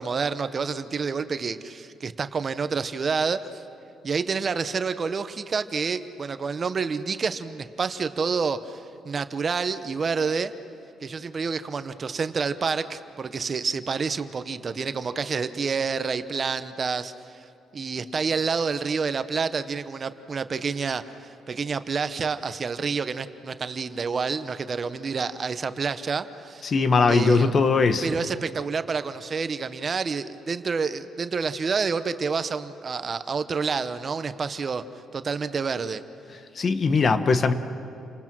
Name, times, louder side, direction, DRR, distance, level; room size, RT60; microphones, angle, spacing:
voice 1, 0.0-3.6 4.0-10.5 11.0-17.5 17.7-26.6 27.1-27.5 28.0-34.8 35.1-36.0, right 5 dB, 40° right, 11 dB, 0.9 m, -28 dB
voice 2, 26.6-28.1 36.6-37.5, left 4 dB, 45° left, 10 dB, 1.2 m, -20 dB
29.5 x 20.0 x 6.2 m, 2.6 s
cardioid pair, 90°, 0 cm